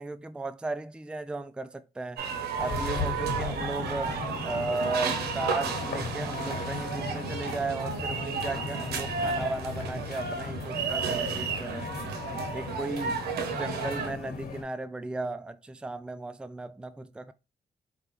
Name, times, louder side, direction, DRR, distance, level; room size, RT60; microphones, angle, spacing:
voice 1, 0.0-2.3 2.6-11.9 12.5-17.3, right 2 dB, 5° right, 0.3 m, -36 dB
sound 1, 2.2-14.1, right 5 dB, 85° right, 0.7 m, -33 dB
sound 2, 2.6-14.6, left 5 dB, 75° left, 1.4 m, -38 dB
sound 3, 5.6-7.7 8.4-9.7 11.0-13.2, left 6 dB, 50° left, 0.7 m, -45 dB
4.9 x 2.3 x 3.0 m
cardioid pair, 65°, 16 cm